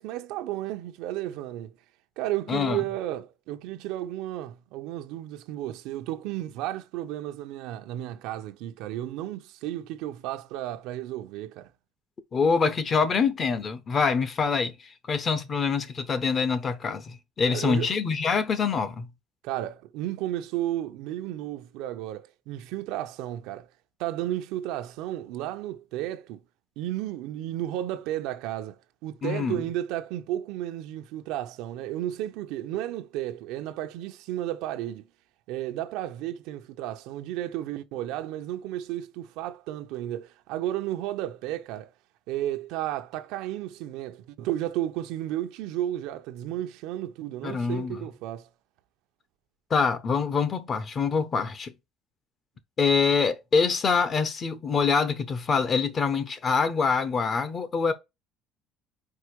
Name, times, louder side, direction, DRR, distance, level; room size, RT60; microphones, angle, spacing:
voice 1, 0.0-1.7 2.2-11.7 17.5-17.9 19.4-23.7 24.0-26.4 26.8-35.1 35.5-41.9 42.3-48.5, right 13 dB, 80° right, 0.7 m, -33 dB
voice 2, 2.5-2.8 12.3-19.1 29.2-29.6 47.4-48.0 49.7-51.7 52.8-57.9, left 5 dB, 30° left, 0.9 m, -25 dB
4.8 x 4.6 x 4.6 m
cardioid pair, 135°, 0 cm